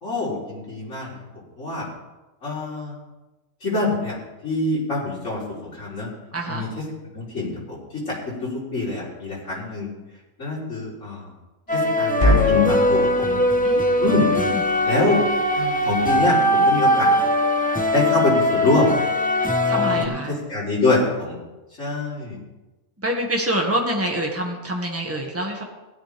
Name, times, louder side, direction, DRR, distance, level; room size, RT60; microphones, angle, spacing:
voice 1, 0.0-1.1 1.6-1.9 2.4-3.0 3.6-4.2 4.4-6.1 6.5-6.8 7.1-7.8 8.1-9.9 10.4-11.3 11.7-13.4 14.0-14.3 14.8-15.2 15.5-17.2 17.9-18.9 19.7-21.4 21.8-22.4, left 2 dB, 80° left, -6 dB, 4.5 m, -25 dB
voice 2, 6.3-6.6 13.6-14.0 14.4-14.6 19.7-20.3 23.0-25.6, right 1 dB, 10° right, -1 dB, 1.8 m, -26 dB
sound 1, 11.7-20.1, left 1 dB, 5° left, 1.0 m, -20 dB
sound 2, 12.2-16.5, left 1 dB, 45° left, 4.6 m, -27 dB
16.5 x 11.5 x 3.5 m, 1.1 s
omnidirectional pair, 1.3 m